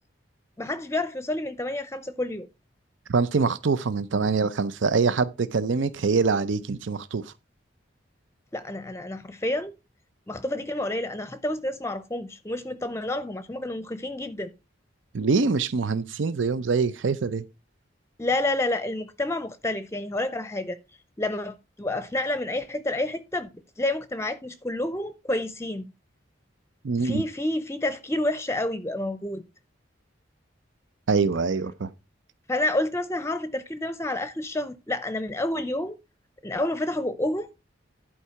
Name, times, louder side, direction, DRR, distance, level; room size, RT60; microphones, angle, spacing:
voice 1, 0.6-2.5 8.5-9.8 10.3-14.5 18.2-20.8 21.2-23.5 23.8-25.9 27.0-29.4 32.5-36.0 36.4-37.5, left 1 dB, 15° left, 0.6 m, -29 dB
voice 2, 3.1-7.3 15.1-17.4 26.8-27.2 31.1-31.9, right 4 dB, 90° right, 0.6 m, -24 dB
11.5 x 4.7 x 5.7 m
head